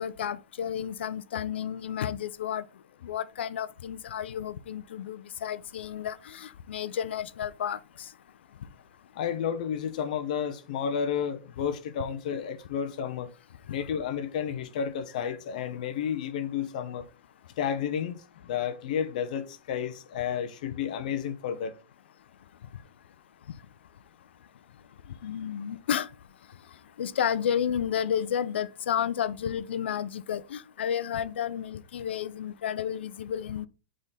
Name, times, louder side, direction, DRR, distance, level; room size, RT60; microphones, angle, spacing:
voice 1, 0.0-2.6 3.0-7.8 13.7-13.8 25.2-26.1 27.0-33.7, left 9 dB, 85° left, 0.6 m, -31 dB
voice 2, 9.1-13.3 13.7-17.0 17.6-18.2 18.4-21.7, left 8 dB, 45° left, 0.7 m, -31 dB
8.2 x 3.7 x 4.1 m
supercardioid pair, 175°, 6 cm